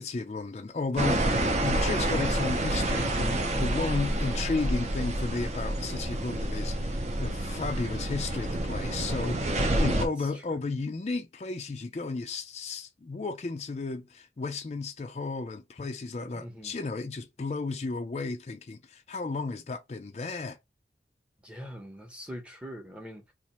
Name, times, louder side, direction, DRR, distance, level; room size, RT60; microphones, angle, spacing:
voice 1, 0.0-20.6, left 3 dB, 35° left, 0.4 m, -34 dB
sound 1, 1.0-10.0, right 1 dB, 40° right, 0.6 m, -28 dB
voice 2, 9.3-10.0 10.5-10.6 16.3-16.7 21.4-23.3, equal, 5° right, 0.8 m, -42 dB
2.8 x 2.5 x 4.2 m
head